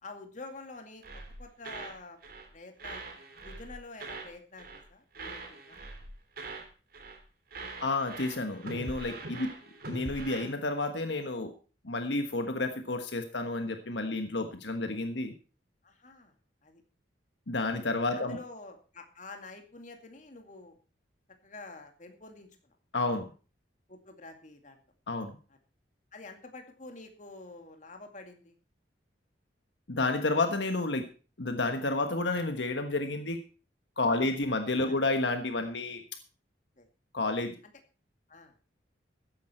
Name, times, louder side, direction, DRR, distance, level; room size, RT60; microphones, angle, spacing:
voice 1, 0.0-3.0 3.4-5.8 6.4-6.5 9.3-9.5 15.8-16.3 16.6-16.8 18.1-20.8 21.4-22.7 23.9-24.8 26.1-28.5 34.0-34.4 34.8-34.9 36.8-36.9 38.3-38.5, left 3 dB, 40° left, 5 dB, 2.3 m, -48 dB
sound 1, 1.0-2.5 2.8-4.3 4.6-4.9 5.1-6.7 6.9-7.2 7.5-10.5, right 2 dB, 50° right, 3.1 m, -43 dB
voice 2, 7.8-9.5 9.9-11.5 11.8-15.3 17.5-18.4 22.9-23.3 25.1-25.3 29.9-31.0 31.4-33.4 34.0-36.0 37.1-37.6, left 2 dB, 70° left, 6 dB, 1.4 m, -30 dB
14.5 x 10.5 x 4.4 m, 0.36 s
head